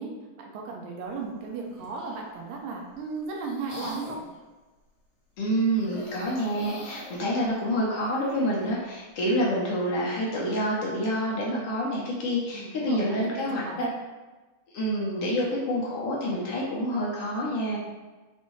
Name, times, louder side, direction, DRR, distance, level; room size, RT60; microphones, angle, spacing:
voice 1, 0.0-4.2 12.5-13.9, right 4 dB, 75° right, 0 dB, 1.8 m, -36 dB
sound 1, 1.6-2.3 2.9-4.4 5.7-8.8, left 1 dB, 50° left, 2.1 m, -43 dB
voice 2, 5.4-13.6 14.7-17.8, equal, 75° left, -4 dB, 1.3 m, -27 dB
5.3 x 2.6 x 3.1 m, 1.2 s
omnidirectional pair, 3.4 m